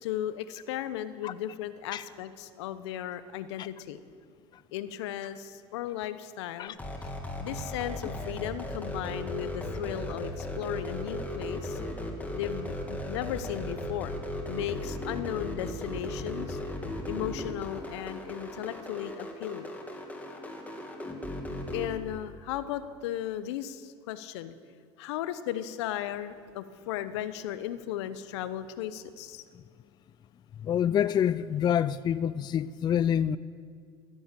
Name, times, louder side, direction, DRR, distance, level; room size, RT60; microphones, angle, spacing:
voice 1, 0.0-4.0 4.7-6.7 7.4-11.8 12.3-14.1 14.5-16.6 17.1-19.7 21.7-24.6 25.0-29.4, left 11 dB, 80° left, 0.8 m, -36 dB
sound 1, 6.7-21.9, left 1 dB, 10° left, 2.2 m, -36 dB
voice 2, 30.6-33.4, left 9 dB, 30° left, 0.3 m, -27 dB
13.5 x 11.0 x 7.5 m
supercardioid pair, 100°, 14 cm